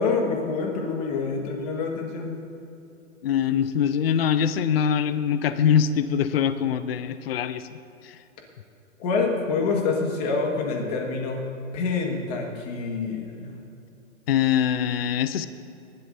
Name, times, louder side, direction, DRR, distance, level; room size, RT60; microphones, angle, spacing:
voice 1, 0.0-2.4 9.0-11.4 11.7-13.5, left 4 dB, 30° left, 1 dB, 1.7 m, -26 dB
voice 2, 3.2-7.7 8.0-8.2 14.3-15.5, left 8 dB, 45° left, 12 dB, 0.5 m, -23 dB
22.5 x 11.5 x 2.7 m, 2.7 s
hypercardioid pair, 165°, 42 cm